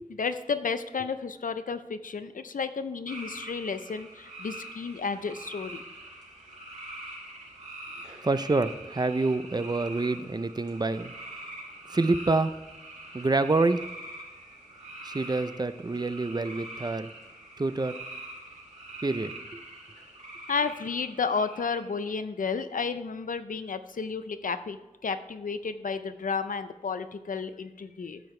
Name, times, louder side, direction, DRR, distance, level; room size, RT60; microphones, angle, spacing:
voice 1, 0.2-5.8 20.5-28.2, left 5 dB, 85° left, 10 dB, 0.5 m, -32 dB
sound 1, 3.1-22.0, right 2 dB, 65° right, 2.5 m, -44 dB
voice 2, 8.2-11.1 11.9-12.6 13.1-13.9 15.0-17.1 17.6-18.0 19.0-19.3, right 3 dB, 30° right, 12 dB, 0.5 m, -27 dB
12.0 x 6.9 x 3.2 m, 1.0 s
wide cardioid pair, 60°, 14 cm